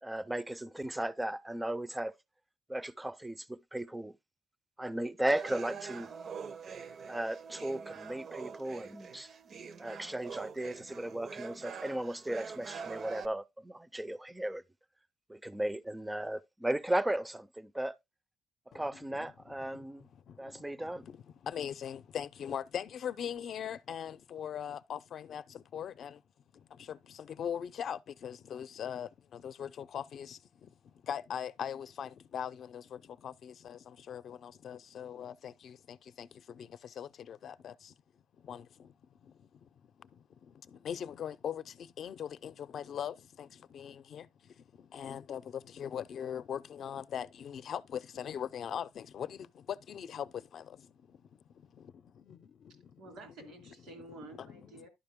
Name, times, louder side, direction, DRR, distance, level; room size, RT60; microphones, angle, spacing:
voice 1, 0.0-2.1 2.7-4.1 4.8-6.1 7.1-9.3 9.8-14.6 15.3-18.0 18.7-20.0 20.4-21.1, right 1 dB, 10° right, 0.4 m, -36 dB
sound 1, 5.3-13.3, right 6 dB, 55° right, 0.6 m, -45 dB
voice 2, 21.5-25.4 25.7-26.1 26.9-27.0 27.4-30.4 31.1-32.8 33.2-33.8 34.1-35.7 36.2-36.3 37.0-37.7 38.5-38.6 40.8-41.6 42.0-43.5 43.7-44.2 44.9-45.4 45.8-49.4 49.9-50.3 50.5-50.6 52.3-52.4 53.4-53.5 54.2-54.5, left 8 dB, 65° left, 0.5 m, -39 dB
voice 3, 52.7-54.9, right 2 dB, 85° right, 2.7 m, -51 dB
11.5 x 5.0 x 3.6 m
cardioid pair, 90°, 0 cm